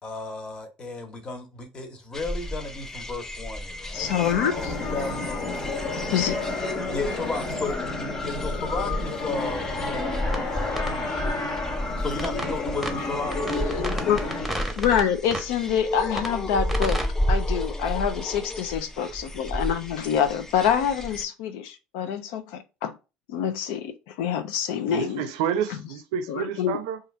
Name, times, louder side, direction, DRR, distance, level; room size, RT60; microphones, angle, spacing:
voice 1, 0.0-4.1 4.5-5.8 6.9-7.8 8.2-11.3 12.0-13.4, left 3 dB, 30° left, 1.0 m, -34 dB
sound 1, 2.1-21.2, left 1 dB, 15° left, 0.4 m, -32 dB
voice 2, 3.9-4.7 6.1-6.4 13.8-14.2 14.8-17.0 17.3-22.9 23.3-25.2 26.3-26.8, left 8 dB, 80° left, 0.5 m, -26 dB
sound 2, 3.9-14.5, left 3 dB, 50° left, 1.1 m, -30 dB
sound 3, 10.3-10.4 10.8-10.9 12.2-12.5 12.8-12.9 13.3-15.0 15.3-15.5 16.2-16.3 16.7-17.1, right 1 dB, ahead, 0.9 m, -31 dB
voice 3, 24.9-27.0, right 8 dB, 85° right, 0.5 m, -29 dB
2.7 x 2.5 x 4.1 m
supercardioid pair, 90°, 3 cm